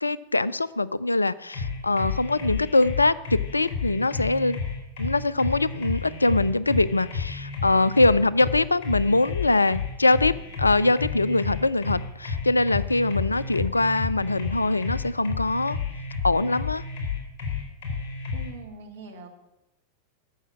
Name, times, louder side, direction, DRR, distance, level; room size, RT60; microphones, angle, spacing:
voice 1, 0.0-4.6 5.0-10.3 10.6-15.8 16.2-16.8, left 2 dB, 80° left, 19 dB, 0.4 m, -23 dB
sound 1, 1.5-18.5, left 5 dB, 45° left, 3.7 m, -31 dB
voice 2, 18.3-19.3, right 4 dB, 65° right, 3 dB, 2.4 m, -42 dB
12.5 x 7.2 x 8.4 m, 0.91 s
figure-of-eight pair, 90°, 0 cm